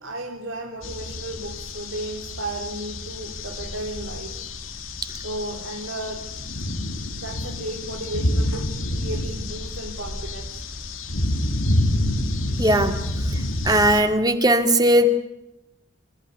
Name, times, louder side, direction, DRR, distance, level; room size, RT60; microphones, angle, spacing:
voice 1, 0.0-4.4 5.2-6.3 7.2-10.6, right 1 dB, 75° right, 1 dB, 3.4 m, -34 dB
sound 1, 0.8-14.0, left 1 dB, 90° left, 2.7 m, -28 dB
voice 2, 12.6-12.9 13.6-15.1, right 1 dB, 20° right, 7 dB, 2.4 m, -18 dB
28.5 x 14.5 x 9.5 m, 0.87 s
head